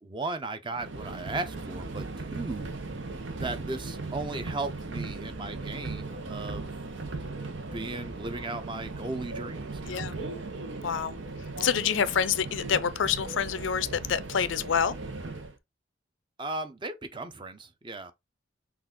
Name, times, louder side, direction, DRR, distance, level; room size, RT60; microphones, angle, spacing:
voice 1, 0.0-2.7 3.4-6.7 7.7-10.0 10.9-11.1 16.4-18.1, right 2 dB, 25° right, 0.6 m, -36 dB
Subway metro underground, 0.7-15.6, right 3 dB, 80° right, 0.9 m, -38 dB
voice 2, 9.8-10.2 10.8-11.1 11.6-14.9, left 7 dB, 80° left, 0.5 m, -27 dB
5.9 x 2.4 x 3.7 m
head